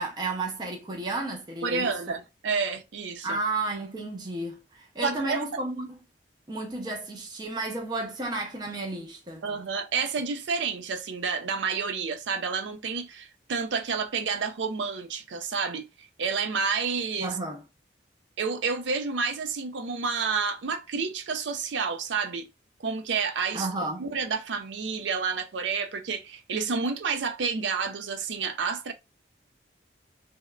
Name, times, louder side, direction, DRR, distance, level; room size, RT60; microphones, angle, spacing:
voice 1, 0.0-2.0 3.2-6.0 6.5-9.4 17.2-17.6 23.5-24.1, right 2 dB, 25° right, 0.5 m, -32 dB
voice 2, 1.6-3.4 5.0-5.4 9.4-15.9 16.2-17.3 18.4-22.5 22.8-23.7 24.0-28.9, right 5 dB, 80° right, 0.5 m, -29 dB
3.4 x 2.1 x 2.3 m
head